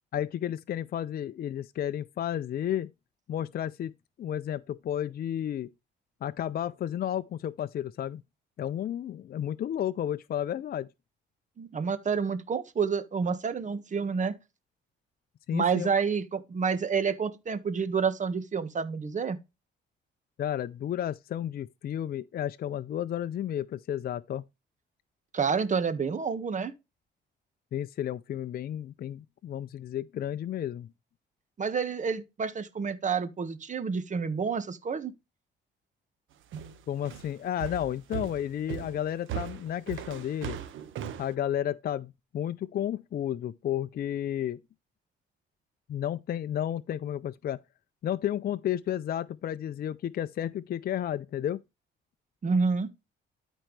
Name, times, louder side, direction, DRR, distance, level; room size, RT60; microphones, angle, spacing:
voice 1, 0.1-2.9 3.3-3.9 4.2-5.7 6.2-8.2 8.6-10.9 15.5-15.9 20.4-24.4 27.7-30.9 36.9-40.6 41.2-44.6 45.9-47.6 48.0-51.6, left 10 dB, 50° left, 0.5 m, -32 dB
voice 2, 11.6-14.3 15.5-19.4 25.3-26.7 31.6-35.1 52.4-52.9, right 5 dB, 40° right, 1.4 m, -29 dB
sound 1, 36.5-41.3, right 9 dB, 80° right, 1.3 m, -38 dB
13.0 x 4.5 x 3.2 m
cardioid pair, 90°, 20 cm